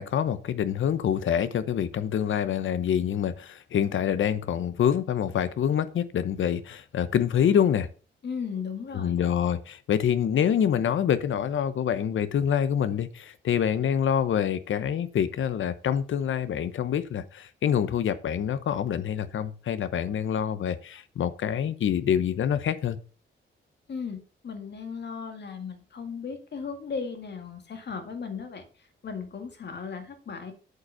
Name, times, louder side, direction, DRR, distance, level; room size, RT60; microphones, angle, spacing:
voice 1, 0.0-7.9 8.9-23.0, left 9 dB, 70° left, 0.9 m, -26 dB
voice 2, 8.2-9.1 23.9-24.2 24.4-28.6 29.0-30.5, left 5 dB, 55° left, 1.9 m, -36 dB
7.9 x 5.5 x 5.5 m
cardioid pair, 105°, 21 cm